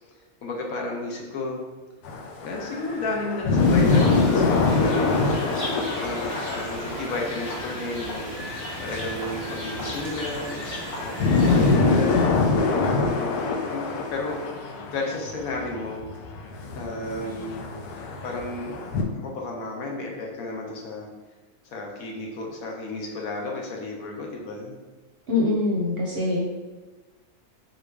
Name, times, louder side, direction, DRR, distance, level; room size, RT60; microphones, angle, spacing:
voice 1, 0.4-1.6 2.4-5.4 6.0-8.2 8.8-10.5 11.0-12.1 12.8-14.4 14.9-16.0 16.7-17.7 18.2-18.8 19.1-21.1 21.6-24.8, left 2 dB, 70° left, 0 dB, 1.1 m, -32 dB
sound 1, 2.0-7.8 8.1-8.2 8.7-19.0, left 3 dB, 90° left, 1.1 m, -25 dB
Wind, 2.5-12.4, left 2 dB, 55° left, 0.7 m, -40 dB
sound 2, 3.6-11.8, equal, 40° left, 1.2 m, -36 dB
voice 2, 25.3-26.5, left 2 dB, 55° right, -5 dB, 0.7 m, -24 dB
3.9 x 3.0 x 3.3 m, 1.2 s
omnidirectional pair, 1.6 m